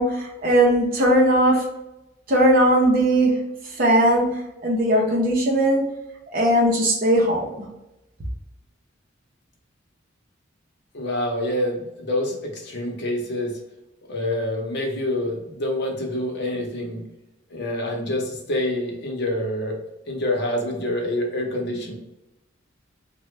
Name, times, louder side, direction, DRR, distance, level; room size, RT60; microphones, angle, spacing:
voice 1, 0.0-1.6 2.3-3.3 3.8-4.3 4.6-5.8 6.3-7.5, right 1 dB, 45° right, -1 dB, 0.8 m, -18 dB
voice 2, 10.9-13.6 14.1-17.0 17.5-19.8 20.0-21.9, left 1 dB, 55° left, 0 dB, 0.8 m, -26 dB
3.0 x 2.2 x 3.1 m, 0.93 s
head